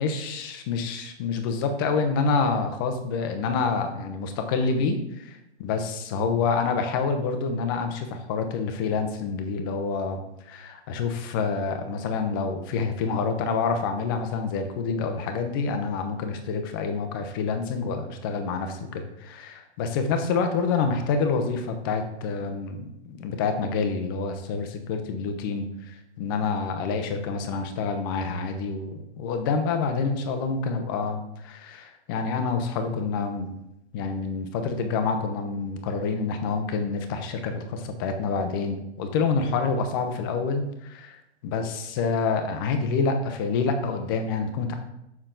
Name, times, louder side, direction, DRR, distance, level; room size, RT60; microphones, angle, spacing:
voice 1, 0.0-33.5 33.9-44.7, left 4 dB, 20° left, 6 dB, 0.6 m, -27 dB
6.8 x 5.8 x 3.8 m, 0.84 s
hypercardioid pair, 155°, 34 cm